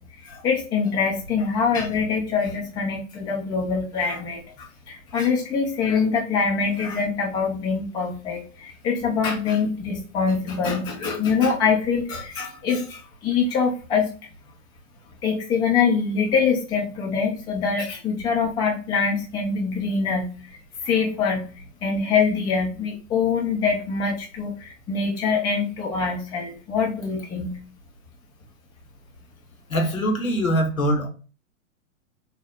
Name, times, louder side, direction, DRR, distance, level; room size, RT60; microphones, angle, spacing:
voice 1, 0.2-14.1 15.2-20.6 20.8-21.5 21.8-27.6, left 5 dB, 10° left, 0 dB, 0.4 m, -24 dB
voice 2, 29.7-31.1, equal, 85° left, 2 dB, 1.0 m, -22 dB
4.1 x 2.0 x 2.3 m, 0.36 s
figure-of-eight pair, 105°, 40 cm